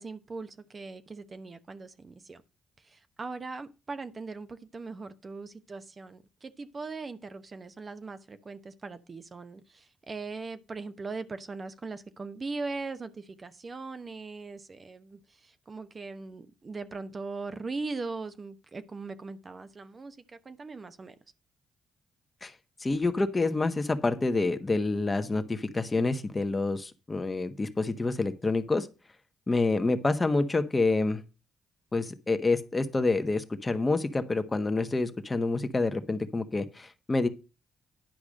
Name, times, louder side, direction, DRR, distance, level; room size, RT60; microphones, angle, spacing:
voice 1, 0.0-2.4 2.8-21.1, right 3 dB, 40° right, 1.0 m, -40 dB
voice 2, 22.8-28.9 29.5-31.2 31.9-37.3, left 3 dB, 30° left, 1.3 m, -27 dB
10.5 x 4.8 x 6.4 m
hypercardioid pair, 50°, 0 cm